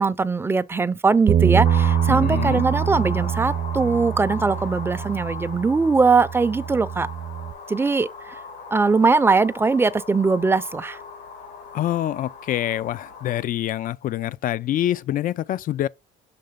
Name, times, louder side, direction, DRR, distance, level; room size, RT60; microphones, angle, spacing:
voice 1, 0.0-7.1 7.7-8.4 8.7-11.0, right 4 dB, 15° right, 0.5 m, -21 dB
Bass guitar, 1.3-7.5, right 9 dB, 50° right, 0.7 m, -24 dB
sound 1, 1.6-13.4, left 4 dB, 85° left, 2.5 m, -38 dB
voice 2, 2.1-2.6 11.7-15.9, left 12 dB, 55° left, 0.4 m, -26 dB
6.8 x 3.0 x 5.1 m
cardioid pair, 110°, 17 cm